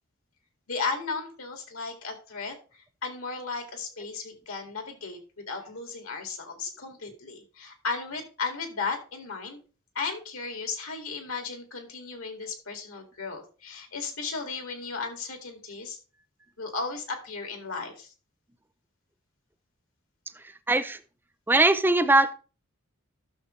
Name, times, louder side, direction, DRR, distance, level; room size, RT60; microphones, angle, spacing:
voice 1, 0.7-9.6 9.9-16.0 16.6-18.1, left 4 dB, 85° left, 4 dB, 2.3 m, -35 dB
voice 2, 20.4-21.0 21.5-22.3, right 2 dB, 10° right, 13 dB, 0.5 m, -21 dB
12.0 x 6.7 x 3.2 m, 0.35 s
head